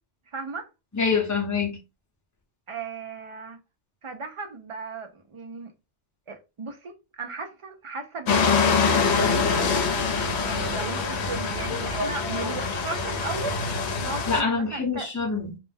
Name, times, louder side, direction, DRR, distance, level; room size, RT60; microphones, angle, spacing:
voice 1, 0.3-0.7 2.7-3.6 4.0-5.7 6.3-15.1, right 4 dB, 55° right, 0.3 m, -36 dB
voice 2, 0.9-1.8 14.3-15.6, left 5 dB, 20° left, 0.7 m, -25 dB
sound 1, 8.3-14.4, left 5 dB, 70° left, 0.9 m, -24 dB
2.5 x 2.1 x 3.3 m
omnidirectional pair, 1.2 m